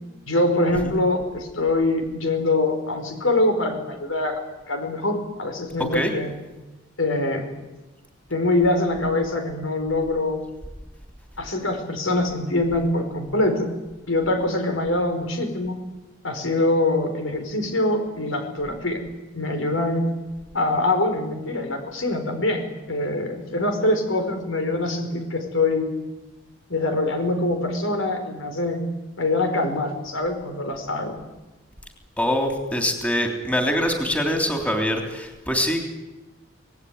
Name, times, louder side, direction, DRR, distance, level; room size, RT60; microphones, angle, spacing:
voice 1, 0.3-6.4 7.0-7.5 8.3-10.4 11.4-13.7 14.1-15.8 16.2-19.0 19.3-20.1 20.5-25.9 26.7-28.8 29.2-31.1, left 2 dB, 90° left, 6 dB, 5.0 m, -24 dB
voice 2, 32.2-35.8, equal, 5° left, 3 dB, 3.3 m, -24 dB
25.5 x 19.0 x 9.6 m, 1.1 s
head